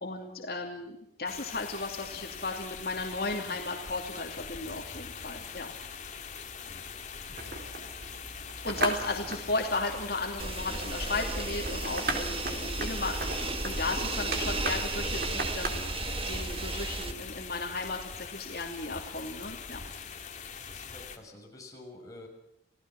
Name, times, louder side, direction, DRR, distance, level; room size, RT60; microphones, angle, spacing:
voice 1, 0.0-5.7 8.6-15.8 16.3-19.8, left 3 dB, 60° left, 1 dB, 2.8 m, -35 dB
sound 1, 1.3-21.2, left 5 dB, 40° left, 2.3 m, -42 dB
sound 2, 7.4-15.7, right 2 dB, 60° right, 3.9 m, -38 dB
voice 2, 8.8-9.1 20.6-22.3, left 2 dB, 20° left, -1 dB, 6.4 m, -49 dB
sound 3, 10.4-17.1, right 3 dB, 30° right, 1.5 m, -34 dB
29.5 x 17.5 x 6.1 m, 0.79 s
head